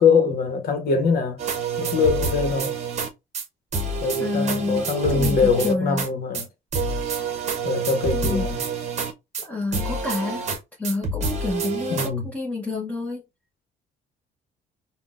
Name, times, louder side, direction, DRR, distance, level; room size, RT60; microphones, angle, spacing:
voice 1, 0.0-1.4 1.8-2.7 4.0-6.5 7.6-8.6 11.9-12.3, left 5 dB, 60° left, 1.0 m, -23 dB
sound 1, 1.4-3.1 3.3-3.5 3.7-6.1 6.3-6.5 6.7-9.5 9.7-10.6 10.8-12.1, right 4 dB, 40° right, 0.8 m, -27 dB
voice 2, 4.2-4.9 5.1-6.0 8.1-8.5 9.4-10.4 10.8-13.2, left 3 dB, 10° left, 0.9 m, -28 dB
3.7 x 2.3 x 2.5 m
cardioid pair, 110°, 17 cm